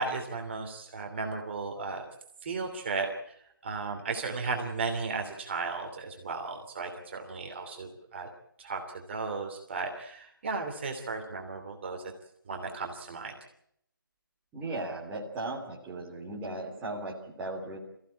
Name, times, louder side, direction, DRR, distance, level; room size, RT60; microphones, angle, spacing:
voice 1, 0.0-2.1 2.4-3.1 3.6-8.3 8.6-8.8 9.1-12.0 12.5-13.3, right 4 dB, 30° right, 2 dB, 2.8 m, -35 dB
voice 2, 14.5-17.8, right 2 dB, 10° right, -5 dB, 3.0 m, -37 dB
24.0 x 15.5 x 8.5 m, 0.72 s
figure-of-eight pair, 160°, 12 cm